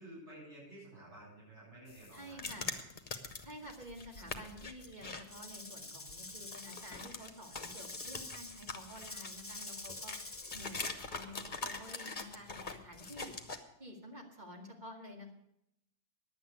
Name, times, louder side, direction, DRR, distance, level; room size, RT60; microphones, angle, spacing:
voice 1, 0.0-2.8, right 1 dB, 80° right, -6 dB, 8.1 m, -52 dB
sound 1, 1.9-5.2 5.6-5.7 6.1-13.6, left 3 dB, 45° left, 1.3 m, -43 dB
voice 2, 2.1-2.7 3.4-10.2 10.5-13.3 13.8-15.3, equal, 40° right, 0 dB, 2.4 m, -50 dB
Rattle / Rattle (instrument), 5.3-10.8, left 2 dB, 15° left, 0.6 m, -47 dB
10.5 x 8.6 x 9.6 m, 0.78 s
omnidirectional pair, 1.2 m